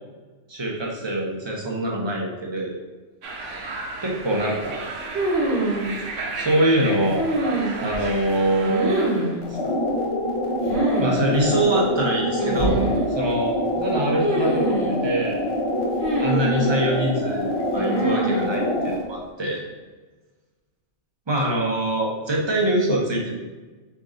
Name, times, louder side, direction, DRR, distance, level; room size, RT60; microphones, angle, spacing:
voice 1, 0.5-2.8 4.0-4.8 6.3-7.3 7.8-9.6 11.0-12.8 13.1-15.4 16.2-19.6 21.3-23.5, right 1 dB, 25° right, -2 dB, 0.6 m, -24 dB
sound 1, 3.2-9.4, right 2 dB, 80° right, 1.0 m, -34 dB
sound 2, 5.1-5.9 7.2-8.0 8.6-9.4 10.7-11.1 11.4-11.5 12.4-13.1 14.2-15.0 16.0-16.8 17.8-18.5, right 2 dB, 55° right, 1.2 m, -24 dB
sound 3, 9.4-19.0, left 1 dB, 35° left, 0.6 m, -25 dB
3.9 x 3.5 x 3.7 m, 1.3 s
omnidirectional pair, 1.3 m